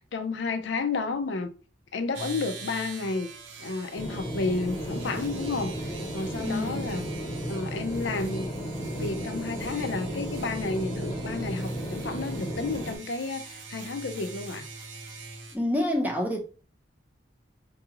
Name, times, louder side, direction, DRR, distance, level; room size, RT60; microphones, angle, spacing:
voice 1, 0.0-1.5 1.9-3.3 3.6-7.0 7.5-8.5 9.0-14.7, left 3 dB, 75° left, 0.5 m, -31 dB
sound 1, 2.1-15.6, right 3 dB, 85° right, 0.8 m, -43 dB
sound 2, 4.0-13.0, right 1 dB, 20° left, 0.9 m, -34 dB
voice 2, 6.4-6.9 15.5-16.4, left 1 dB, 10° right, 0.6 m, -27 dB
4.7 x 2.4 x 2.9 m
head